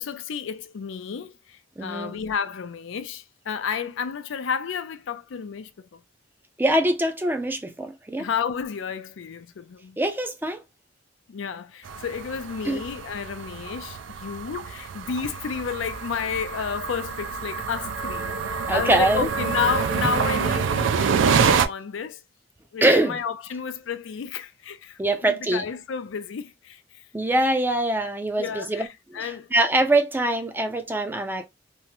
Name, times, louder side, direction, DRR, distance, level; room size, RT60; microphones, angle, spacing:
voice 1, 0.0-6.0 8.2-10.0 11.3-22.2 22.7-27.0 28.4-28.9 29.1-29.5, left 6 dB, 80° left, 0.4 m, -31 dB
voice 2, 1.8-2.2 6.6-8.3 10.0-10.6 12.6-12.8 18.7-19.3 22.8-23.2 25.0-25.7 27.1-28.9 29.2-31.5, right 1 dB, 10° right, 0.4 m, -23 dB
sound 1, 11.8-21.7, right 6 dB, 80° right, 0.4 m, -26 dB
3.5 x 2.0 x 2.9 m
head